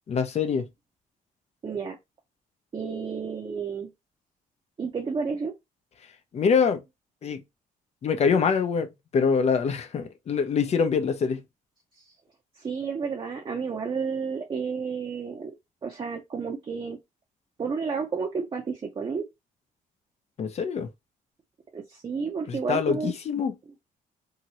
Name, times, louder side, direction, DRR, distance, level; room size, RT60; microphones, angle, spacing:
voice 1, 0.1-0.7 6.0-6.8 7.2-7.4 8.0-11.4 20.4-20.9 22.5-23.6, left 6 dB, 45° left, 0.6 m, -25 dB
voice 2, 1.6-2.0 2.7-3.9 4.8-5.5 12.1-12.2 12.6-15.5 15.8-17.0 17.6-19.2 21.7-23.1, right 5 dB, 35° right, 0.7 m, -31 dB
2.9 x 2.8 x 2.8 m
cardioid pair, 100°, 15 cm